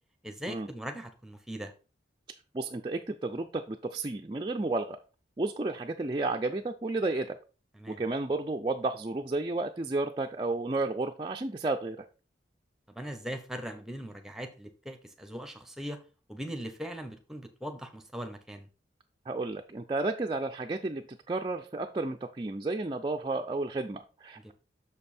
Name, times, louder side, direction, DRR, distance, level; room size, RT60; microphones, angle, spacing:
voice 1, 0.2-1.7 7.7-8.0 12.9-16.0 16.3-18.7 24.4-24.5, equal, ahead, 6 dB, 0.8 m, -40 dB
voice 2, 2.5-5.0 5.4-7.4 7.9-12.1 19.3-24.5, right 2 dB, 25° right, 3 dB, 0.4 m, -32 dB
6.6 x 5.3 x 4.3 m, 0.34 s
head